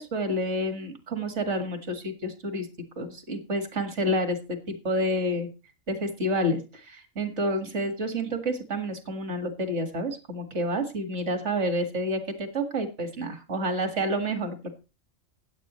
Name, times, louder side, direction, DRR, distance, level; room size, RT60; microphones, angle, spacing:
voice 1, 0.0-2.7 3.0-5.5 5.9-14.7, equal, 60° right, 7 dB, 2.2 m, -29 dB
15.5 x 10.0 x 3.1 m, 0.30 s
omnidirectional pair, 1.3 m